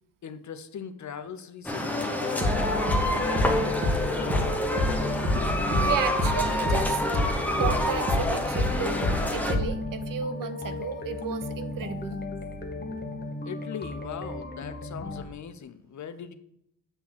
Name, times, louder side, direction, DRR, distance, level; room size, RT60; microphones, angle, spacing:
voice 1, 0.2-4.6 5.3-5.5 13.4-16.3, left 7 dB, 50° left, 11 dB, 0.6 m, -40 dB
sound 1, 1.6-9.5, left 1 dB, 5° left, 0.9 m, -28 dB
sound 2, 2.4-15.2, left 2 dB, 25° left, 1.1 m, -36 dB
sound 3, 2.4-7.3 7.6-9.8, left 1 dB, 30° right, 1.7 m, -27 dB
voice 2, 5.8-7.0 7.5-9.0 9.3-12.2, right 8 dB, 55° right, 11 dB, 0.7 m, -33 dB
8.0 x 3.5 x 6.4 m, 0.75 s
cardioid pair, 115°, 38 cm